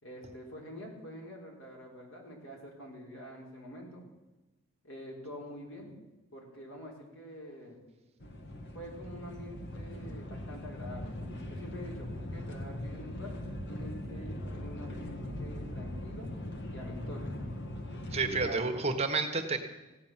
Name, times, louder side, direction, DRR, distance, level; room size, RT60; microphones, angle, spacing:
voice 1, 0.0-4.1 4.8-6.0 6.3-7.8 8.7-13.3 13.7-16.3 16.7-17.3 18.2-18.9, equal, 75° left, -1 dB, 4.1 m, -46 dB
sound 1, 8.2-18.5, left 1 dB, 55° left, 1.7 m, -40 dB
voice 2, 18.1-19.6, right 3 dB, 30° right, 5 dB, 1.4 m, -30 dB
16.0 x 9.7 x 7.5 m, 1.1 s
head